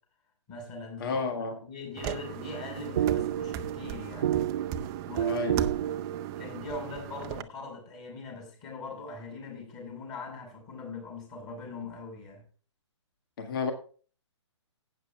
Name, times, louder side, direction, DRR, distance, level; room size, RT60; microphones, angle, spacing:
voice 1, 0.5-1.2 1.6-4.3 5.1-5.5 6.4-12.4, left 2 dB, 25° left, 6.4 m, -41 dB
voice 2, 1.0-1.6 5.3-5.6 13.4-13.7, left 5 dB, 45° left, 1.8 m, -31 dB
sound 1, 2.0-7.4, right 9 dB, 25° right, 0.8 m, -38 dB
sound 2, 2.4-6.7, right 11 dB, 50° right, 0.4 m, -31 dB
12.5 x 9.3 x 3.5 m
figure-of-eight pair, 130°, 16 cm